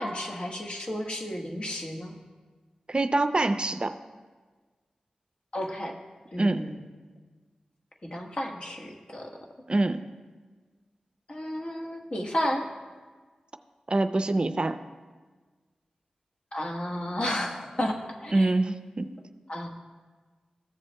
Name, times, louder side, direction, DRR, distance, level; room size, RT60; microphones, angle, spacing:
voice 1, 0.0-2.1 5.5-6.0 6.3-6.8 8.0-9.4 11.3-12.7 16.5-18.5 19.5-19.7, left 1 dB, 50° left, 1 dB, 1.3 m, -32 dB
voice 2, 2.9-3.9 6.4-6.6 9.7-10.0 13.9-14.8 18.3-19.1, right 2 dB, 40° right, 9 dB, 0.5 m, -25 dB
14.5 x 7.5 x 2.2 m, 1.4 s
cardioid pair, 40°, 2 cm